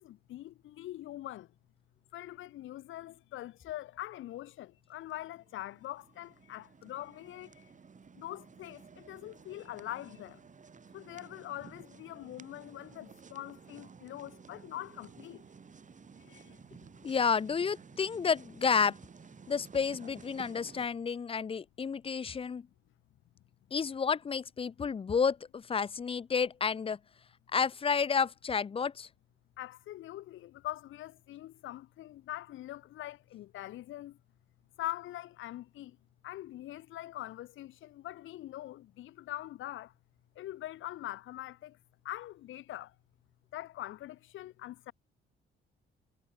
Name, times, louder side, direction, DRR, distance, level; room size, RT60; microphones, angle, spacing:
voice 1, 0.0-1.5 2.1-7.5 8.2-10.4 10.9-15.4 16.3-16.6 29.6-34.1 34.8-35.9 36.2-39.9 40.4-41.8 42.0-42.9 43.5-44.9, left 14 dB, 80° left, 1.2 m, -43 dB
sound 1, 5.1-20.9, right 5 dB, 40° right, 5.4 m, -54 dB
voice 2, 17.0-19.0 19.5-22.7 23.7-27.0 27.5-29.1, left 6 dB, 30° left, 0.5 m, -30 dB
cardioid pair, 90°, 20 cm